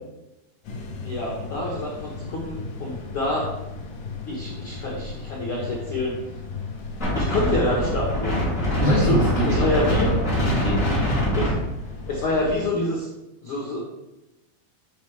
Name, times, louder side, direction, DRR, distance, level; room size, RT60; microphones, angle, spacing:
sound 1, 0.6-12.6, left 4 dB, 65° left, 2.0 m, -37 dB
voice 1, 1.0-3.5 4.3-6.2 7.1-8.4 8.9-9.2 9.5-10.1 11.4-11.5 12.1-13.1 13.4-13.8, left 2 dB, 85° left, -2 dB, 1.1 m, -27 dB
Wind, 7.0-12.5, equal, 25° left, 2.4 m, -24 dB
voice 2, 8.8-11.1, equal, 70° right, -5 dB, 1.4 m, -25 dB
10.0 x 4.6 x 3.3 m, 0.94 s
omnidirectional pair, 4.3 m